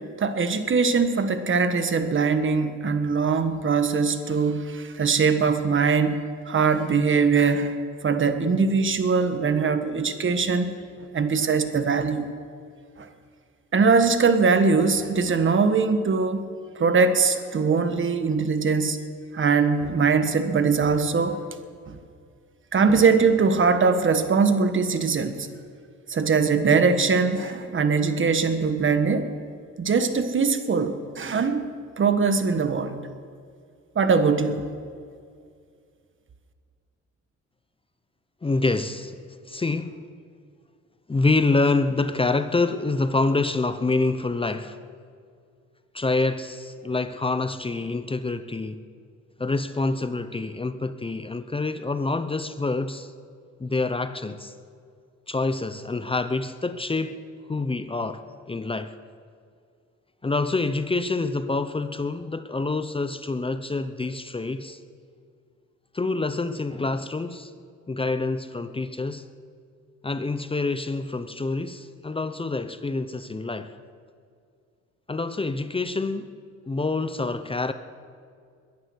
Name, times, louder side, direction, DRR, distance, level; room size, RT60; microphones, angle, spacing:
voice 1, 0.2-7.7 8.0-10.8 11.1-12.3 13.0-13.1 13.7-16.4 16.7-19.0 19.3-21.4 21.9-22.0 22.7-25.5 26.1-29.3 29.8-31.7 32.0-33.0 33.9-34.6, right 5 dB, 40° right, 1.4 m, -22 dB
voice 2, 38.4-39.2 39.5-40.0 41.1-44.8 45.9-48.8 49.4-53.1 53.6-54.5 55.3-57.2 57.5-59.0 60.2-64.8 65.9-67.5 67.9-69.3 70.0-73.8 75.1-76.3 76.7-77.7, left 3 dB, 20° left, 0.7 m, -26 dB
22.0 x 10.5 x 6.4 m
cardioid pair, 90°, 30 cm